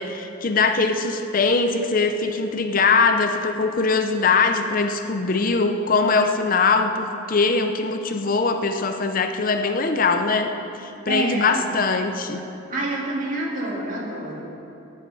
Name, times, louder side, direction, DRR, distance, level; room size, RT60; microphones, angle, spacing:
voice 1, 0.0-10.5 10.8-12.4, left 4 dB, 40° left, 7 dB, 0.5 m, -21 dB
voice 2, 11.0-11.7 12.7-14.5, right 2 dB, 40° right, -2 dB, 2.1 m, -28 dB
14.5 x 10.0 x 4.8 m, 2.8 s
head